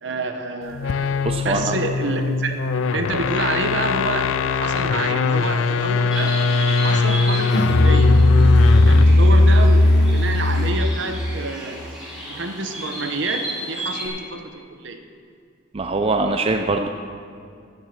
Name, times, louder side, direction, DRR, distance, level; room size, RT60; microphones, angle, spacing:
voice 1, 0.0-2.6 2.8-6.4 6.8-8.2 8.8-11.8 12.3-15.0, right 3 dB, 60° right, 7 dB, 0.9 m, -28 dB
sound 1, 0.7-9.2, left 5 dB, 80° left, 0.4 m, -21 dB
voice 2, 1.2-1.7 15.7-16.9, right 3 dB, 30° right, 5 dB, 0.5 m, -22 dB
Bird, 6.1-14.1, right 1 dB, 5° right, 3.8 m, -34 dB
Musical instrument, 7.5-11.0, left 1 dB, 50° left, 0.7 m, -15 dB
15.0 x 7.3 x 6.6 m, 2.3 s
head